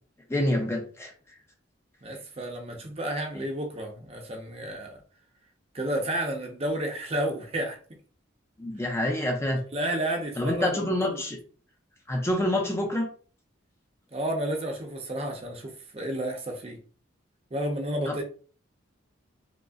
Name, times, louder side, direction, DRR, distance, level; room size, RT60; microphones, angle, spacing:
voice 1, 0.3-1.1 3.3-3.4 8.6-9.6 10.4-11.4 12.1-13.1 18.1-18.2, left 1 dB, 15° left, 1 dB, 0.4 m, -27 dB
voice 2, 2.0-5.0 5.7-7.8 9.7-11.2 14.1-16.8 17.5-18.2, right 1 dB, 30° right, 3 dB, 0.6 m, -31 dB
4.9 x 2.0 x 2.4 m, 0.40 s
head